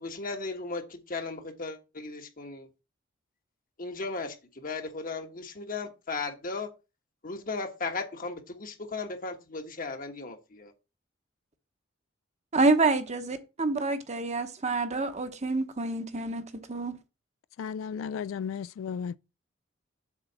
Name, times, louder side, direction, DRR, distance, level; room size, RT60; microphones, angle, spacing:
voice 1, 0.0-2.7 3.8-6.7 7.2-10.7, left 3 dB, 45° left, 1.3 m, -36 dB
voice 2, 12.5-17.0, right 3 dB, 35° right, 0.9 m, -27 dB
voice 3, 17.6-19.2, left 7 dB, 85° left, 0.3 m, -34 dB
7.4 x 3.9 x 6.6 m
head